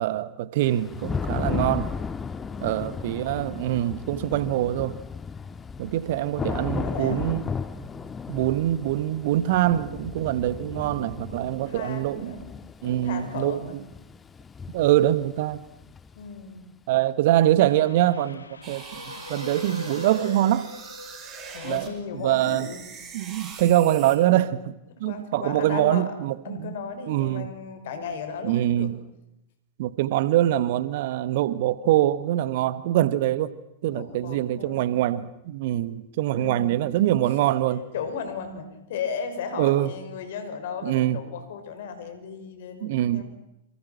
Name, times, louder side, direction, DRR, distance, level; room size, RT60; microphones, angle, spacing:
voice 1, 0.0-1.9 2.6-5.0 5.8-7.5 8.3-12.4 12.8-13.6 14.7-15.6 16.9-20.7 21.6-22.7 23.1-26.7 27.1-27.5 28.4-29.0 29.8-33.5 33.8-37.9 39.6-39.9 40.8-41.2 42.8-43.2, right 13 dB, 50° right, 1.4 m, -24 dB
Thunder / Rain, 0.6-16.4, left 5 dB, 15° left, 1.8 m, -35 dB
voice 2, 2.4-3.2 4.6-4.7 6.3-7.3 11.4-12.5 12.8-13.8 16.2-16.7 21.5-22.9 24.9-26.1 26.4-28.9 33.9-35.0 36.4-37.0 37.2-37.3 37.9-43.2, left 6 dB, 55° left, 6.1 m, -36 dB
Train, 17.6-22.9, left 5 dB, 75° left, 1.8 m, -42 dB
sound 1, 18.6-21.9 22.2-24.2, right 6 dB, 30° right, 7.0 m, -42 dB
29.5 x 28.0 x 6.0 m
figure-of-eight pair, 90°, 0 cm